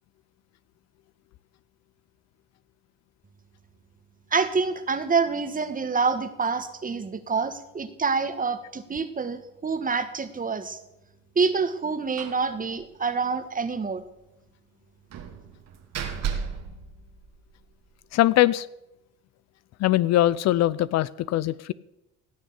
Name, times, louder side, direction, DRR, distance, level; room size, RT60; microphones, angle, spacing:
voice 1, 4.3-10.8 11.3-14.0, right 5 dB, 30° right, 11 dB, 1.5 m, -27 dB
Slam, 12.2-12.5 12.8-12.9 13.2-13.3 15.1-17.7, right 7 dB, 60° right, 2.0 m, -34 dB
voice 2, 18.1-18.7 19.8-21.7, left 14 dB, 60° left, 19 dB, 0.6 m, -21 dB
17.5 x 6.5 x 8.1 m, 0.89 s
supercardioid pair, 80°, 30 cm